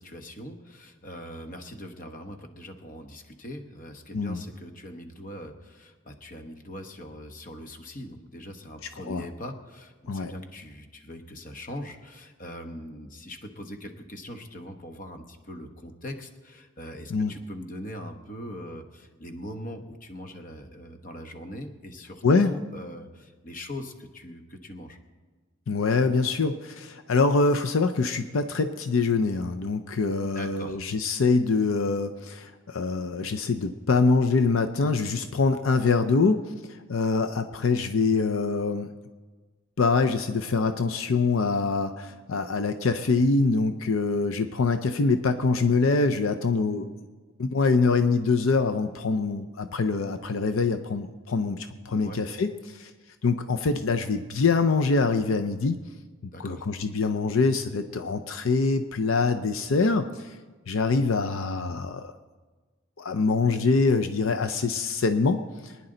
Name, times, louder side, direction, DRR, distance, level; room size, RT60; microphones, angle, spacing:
voice 1, 0.0-25.0 30.3-30.8 51.9-52.2 56.3-56.6, left 1 dB, 40° left, 6 dB, 1.1 m, -41 dB
voice 2, 25.7-38.9 39.8-46.9 47.4-52.9 53.2-55.8 56.4-60.3 60.7-62.1 63.0-65.7, left 4 dB, 80° left, 9 dB, 0.6 m, -24 dB
23.0 x 10.0 x 3.9 m, 1.4 s
head